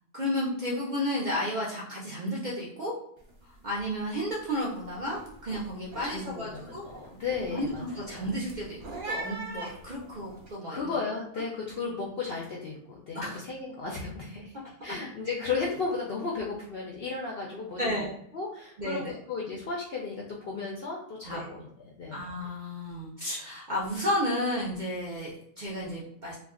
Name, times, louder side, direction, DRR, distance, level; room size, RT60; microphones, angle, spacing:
voice 1, 0.1-2.9 3.4-6.8 7.5-8.8 9.0-10.8 13.1-13.4 17.8-18.1 18.8-19.1 21.3-21.5 22.1-26.4, equal, 70° right, -4 dB, 0.4 m, -32 dB
sound 1, 3.2-3.4 3.7-4.1 4.5-10.5, right 2 dB, 45° right, 0.8 m, -42 dB
voice 2, 6.0-8.2 10.7-14.6 14.8-18.0 18.3-21.7 22.0-22.2, left 4 dB, 70° left, -3 dB, 0.5 m, -34 dB
2.4 x 2.2 x 3.5 m, 0.73 s
omnidirectional pair, 1.5 m